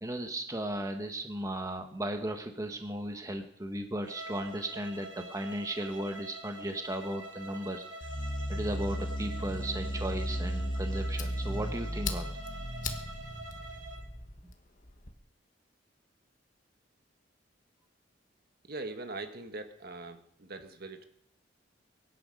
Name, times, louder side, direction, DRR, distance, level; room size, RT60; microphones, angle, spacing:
voice 1, 0.0-7.8 8.5-12.3, right 1 dB, 20° right, 5 dB, 1.1 m, -36 dB
Bowed string instrument, 4.0-14.1, right 2 dB, 80° right, 2.2 m, -46 dB
sound 1, 8.0-14.5, equal, 25° left, 1.6 m, -35 dB
Fire, 10.5-15.1, left 6 dB, 45° left, 1.6 m, -44 dB
voice 2, 18.7-21.0, right 2 dB, 55° right, 7 dB, 1.6 m, -41 dB
23.5 x 10.5 x 5.3 m, 0.74 s
head